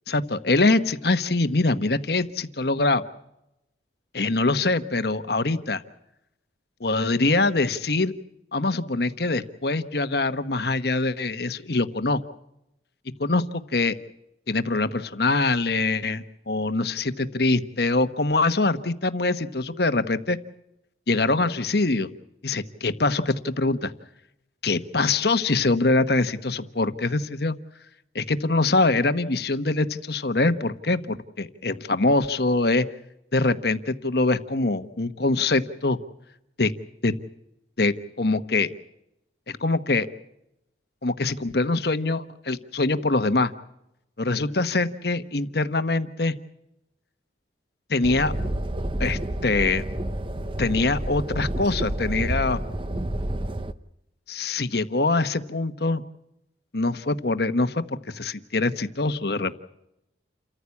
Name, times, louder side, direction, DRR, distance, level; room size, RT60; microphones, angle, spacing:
voice 1, 0.1-3.0 4.1-5.8 6.8-8.1 8.5-12.2 13.2-14.0 14.5-20.4 21.1-22.1 22.4-23.9 24.6-27.5 28.1-32.9 33.3-36.0 36.6-36.7 37.0-37.1 37.8-38.7 39.5-40.1 41.0-43.5 44.2-46.3 47.9-48.3 49.0-49.8 50.6-52.6 54.3-56.0 56.7-59.6, left 3 dB, 55° left, 10 dB, 1.2 m, -24 dB
sound 1, 48.0-53.7, right 1 dB, 25° right, 0.8 m, -29 dB
29.0 x 14.5 x 8.4 m, 0.85 s
head